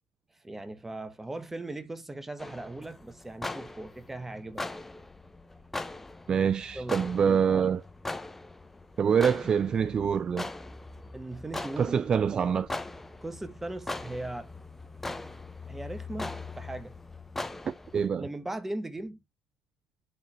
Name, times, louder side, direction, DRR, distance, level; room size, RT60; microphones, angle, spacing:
voice 1, 0.4-4.6 6.7-7.4 11.1-12.1 13.2-14.5 15.7-17.0 18.2-19.2, right 2 dB, 15° right, 1.3 m, -39 dB
sound 1, 2.4-18.1, left 2 dB, 10° left, 0.9 m, -40 dB
voice 2, 6.3-7.8 9.0-10.5 11.8-12.7 17.9-18.3, right 7 dB, 40° right, 0.4 m, -25 dB
11.5 x 4.0 x 3.1 m
supercardioid pair, 75°, 2 cm